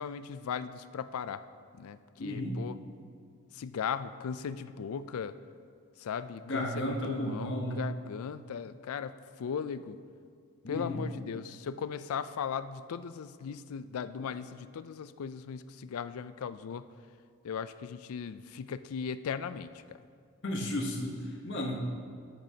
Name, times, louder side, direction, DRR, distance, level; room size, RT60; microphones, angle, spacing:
voice 1, 0.0-1.4 1.8-2.8 3.5-5.4 6.0-10.0 10.7-16.9 17.4-20.0, left 7 dB, 80° left, 13 dB, 0.4 m, -38 dB
voice 2, 2.2-2.5 6.4-7.8 10.6-11.0 20.4-21.8, left 1 dB, 55° left, -1 dB, 1.1 m, -33 dB
12.5 x 9.0 x 2.8 m, 2.1 s
head